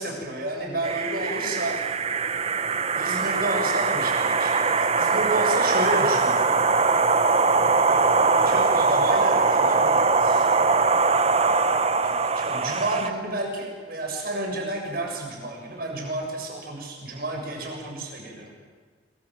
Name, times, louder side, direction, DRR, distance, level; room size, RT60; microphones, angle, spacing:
voice 1, 0.0-1.8 2.7-6.6 7.9-10.5 12.0-18.5, right 2 dB, 50° right, 1 dB, 7.1 m, -31 dB
sound 1, 0.8-13.1, right 4 dB, 30° right, 1.0 m, -22 dB
25.5 x 25.0 x 7.7 m, 1.5 s
head